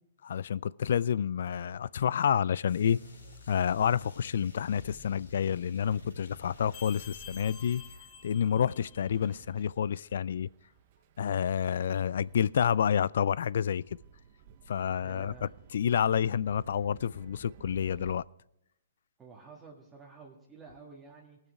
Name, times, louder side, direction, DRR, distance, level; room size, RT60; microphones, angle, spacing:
voice 1, 0.2-3.0 3.5-7.8 8.2-10.5 11.2-14.0 14.7-18.2, left 8 dB, 65° left, 0.3 m, -29 dB
sound 1, 1.3-18.2, right 9 dB, 45° right, 0.8 m, -57 dB
sound 2, 2.7-8.0, left 2 dB, 85° left, 3.7 m, -50 dB
sound 3, 6.7-9.3, left 8 dB, 25° left, 3.1 m, -50 dB
voice 2, 15.0-15.5 19.2-21.4, right 4 dB, 15° right, 1.7 m, -50 dB
19.5 x 6.6 x 4.7 m
hypercardioid pair, 130°, 0 cm